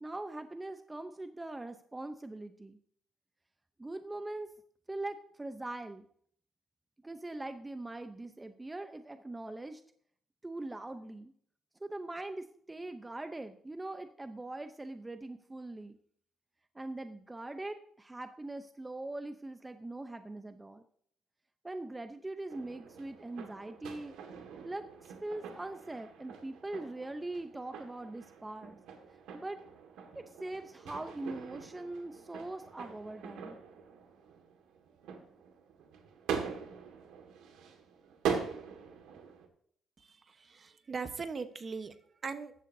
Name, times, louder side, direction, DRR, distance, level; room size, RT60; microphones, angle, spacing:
voice 1, 0.0-2.8 3.8-4.5 4.9-6.0 7.0-9.8 10.4-11.3 11.8-16.0 16.7-20.8 21.6-24.1 24.6-24.9 25.2-28.8 29.3-29.6 30.1-33.6, right 2 dB, 15° right, 8 dB, 0.7 m, -42 dB
sound 1, 22.5-39.5, right 7 dB, 90° right, 1.9 m, -43 dB
voice 2, 40.0-41.9 42.2-42.5, right 5 dB, 40° right, 9 dB, 1.1 m, -40 dB
15.0 x 11.5 x 2.8 m, 0.62 s
cardioid pair, 90°, 0 cm